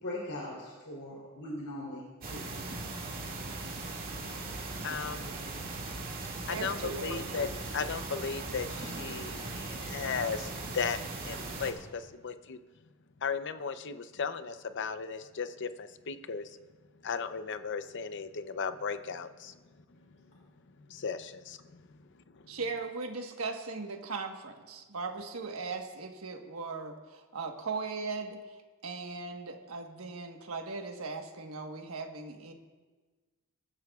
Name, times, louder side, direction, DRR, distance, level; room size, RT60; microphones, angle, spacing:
voice 1, 0.0-2.5, left 1 dB, 85° left, -4 dB, 3.3 m, -40 dB
sound 1, 2.2-11.7, right 2 dB, 45° right, 2.2 m, -39 dB
voice 2, 4.8-5.3 6.5-7.5 7.7-11.0 11.2-12.6 13.2-16.6 17.0-19.6 20.9-21.8 22.3-22.4, left 5 dB, 55° left, 11 dB, 0.6 m, -36 dB
voice 3, 6.5-7.3 22.5-28.6 28.8-32.5, right 4 dB, 75° right, 4 dB, 1.3 m, -38 dB
22.0 x 14.0 x 2.4 m, 1.3 s
head